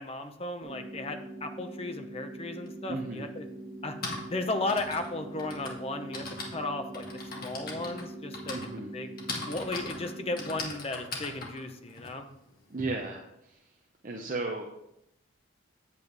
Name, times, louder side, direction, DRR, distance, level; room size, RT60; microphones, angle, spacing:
voice 1, 0.0-3.5 3.8-4.0 4.3-7.0 7.4-8.6 8.9-9.1 9.5-12.3, left 2 dB, 30° left, 6 dB, 0.8 m, -35 dB
sound 1, 0.6-10.6, right 1 dB, 25° right, 3.7 m, -43 dB
Typing, 2.7-2.8 3.7-12.8, left 3 dB, 45° left, 1.7 m, -40 dB
voice 2, 2.9-3.3 8.5-8.9 12.7-13.8 14.0-14.7, right 2 dB, 40° right, 2 dB, 0.7 m, -35 dB
8.9 x 8.4 x 3.3 m, 0.83 s
head